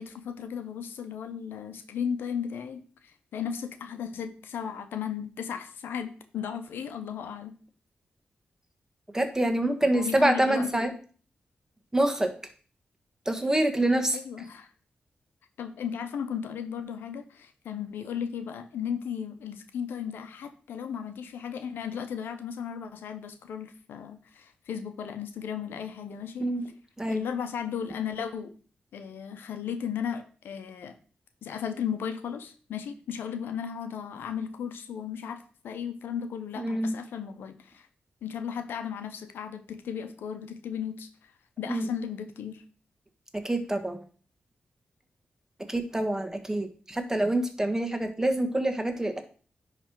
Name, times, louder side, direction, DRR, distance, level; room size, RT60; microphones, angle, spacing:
voice 1, 0.0-7.6 9.8-10.9 14.1-14.7 15.6-26.5 27.1-28.5 28.9-30.9 31.4-37.9 38.2-41.1 41.6-42.6, left 8 dB, 90° left, 9 dB, 0.7 m, -35 dB
voice 2, 9.1-10.9 11.9-12.3 13.2-14.2 26.4-26.7 27.0-27.2 36.6-36.9 41.7-41.9 43.4-44.0 45.7-49.2, right 1 dB, 15° right, 6 dB, 1.5 m, -26 dB
10.0 x 3.3 x 4.6 m, 0.41 s
cardioid pair, 50°, 4 cm